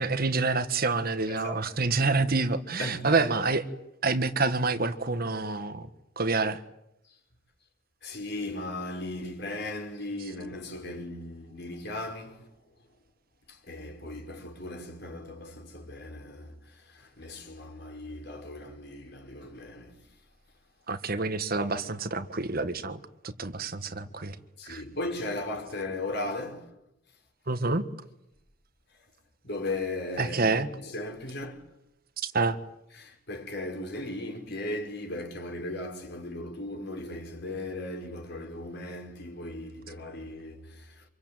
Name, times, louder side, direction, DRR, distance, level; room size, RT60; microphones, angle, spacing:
voice 1, 0.0-3.6 4.0-5.9 6.2-6.6 20.9-24.3 24.7-24.8 27.5-27.8 30.2-30.7 32.2-32.6, right 3 dB, 50° right, 1.5 m, -27 dB
voice 2, 1.3-1.9 2.8-3.3 8.0-12.5 13.5-20.0 24.6-26.7 29.4-31.6 33.0-41.0, left 2 dB, 55° left, 5.2 m, -37 dB
26.5 x 23.0 x 9.1 m
head